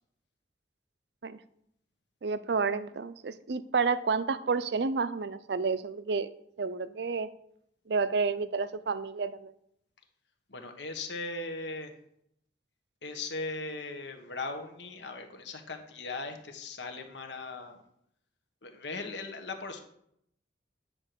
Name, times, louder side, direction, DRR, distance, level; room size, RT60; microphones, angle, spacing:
voice 1, 2.2-6.3 6.6-7.3 7.9-9.5, right 4 dB, 65° right, 14 dB, 0.5 m, -30 dB
voice 2, 10.5-11.9 13.0-17.8 18.6-19.8, left 3 dB, 75° left, 5 dB, 1.2 m, -38 dB
9.7 x 4.4 x 6.7 m, 0.74 s
head